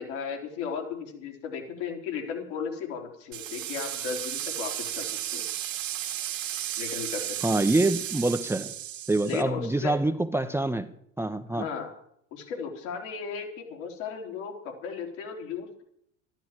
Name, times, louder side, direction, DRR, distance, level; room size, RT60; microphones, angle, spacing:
voice 1, 0.0-5.4 6.8-7.6 9.2-10.0 11.5-11.9 12.3-15.8, left 6 dB, 65° left, 1 dB, 4.0 m, -35 dB
sound 1, 3.3-9.4, right 12 dB, 75° right, 1.9 m, -34 dB
voice 2, 7.4-8.7 9.1-10.9 11.2-11.7, right 2 dB, 5° right, 7 dB, 0.9 m, -25 dB
13.0 x 12.0 x 7.6 m, 0.69 s
figure-of-eight pair, 75°, 38 cm